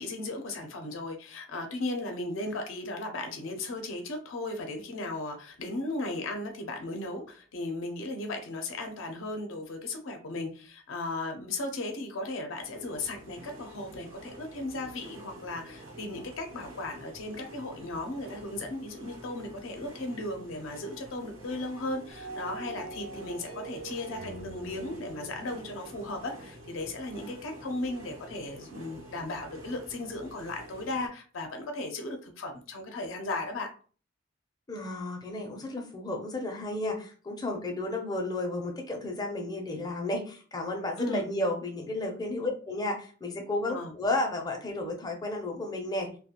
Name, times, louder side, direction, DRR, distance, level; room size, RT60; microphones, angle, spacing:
voice 1, 0.0-33.7 41.0-41.3 42.4-42.5 43.7-43.9, left 2 dB, 75° left, 4 dB, 0.5 m, -36 dB
sound 1, 12.6-31.1, equal, 85° right, 0.9 m, -48 dB
sound 2, 22.1-27.3, right 3 dB, 45° right, 0.4 m, -44 dB
voice 2, 34.7-46.1, left 2 dB, 20° left, 1 dB, 0.5 m, -33 dB
2.4 x 2.1 x 2.8 m, 0.40 s
head